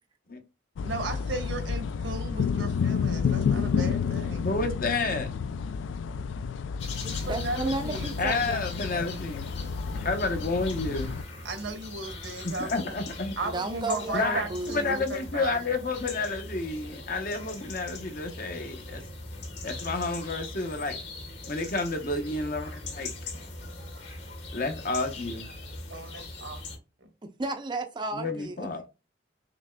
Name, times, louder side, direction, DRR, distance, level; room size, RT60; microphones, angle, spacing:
sound 1, 0.8-11.2, left 6 dB, 85° left, 0.3 m, -30 dB
voice 1, 0.8-4.5 7.0-8.2 11.4-12.9 13.4-15.6 25.9-26.7, right 2 dB, 75° right, 1.2 m, -36 dB
voice 2, 4.4-5.3 8.2-9.5 10.0-11.1 12.4-13.3 14.1-14.4 14.7-19.0 19.6-21.0 21.5-23.1 24.5-25.5 28.1-28.8, left 3 dB, 50° left, 0.8 m, -30 dB
sound 2, 6.8-26.8, left 2 dB, 70° left, 2.1 m, -41 dB
voice 3, 7.2-8.7 13.4-15.1 27.4-28.9, right 2 dB, 25° right, 0.5 m, -33 dB
5.9 x 3.2 x 2.2 m
head